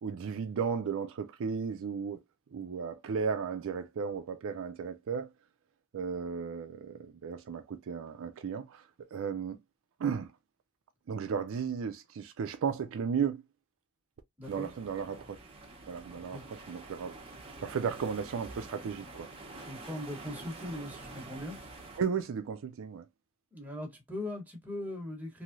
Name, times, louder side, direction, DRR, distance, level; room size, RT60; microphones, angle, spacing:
voice 1, 0.0-2.2 2.5-5.3 5.9-9.6 10.0-10.3 11.1-13.4 14.5-15.4 15.9-17.2 17.6-19.3 22.0-23.0, right 6 dB, 60° right, 0.4 m, -34 dB
voice 2, 14.4-14.7 16.2-16.4 19.7-21.6 23.5-25.4, left 1 dB, 5° right, 1.1 m, -40 dB
sound 1, 14.4-22.0, right 2 dB, 25° right, 0.8 m, -47 dB
3.1 x 2.7 x 2.5 m
head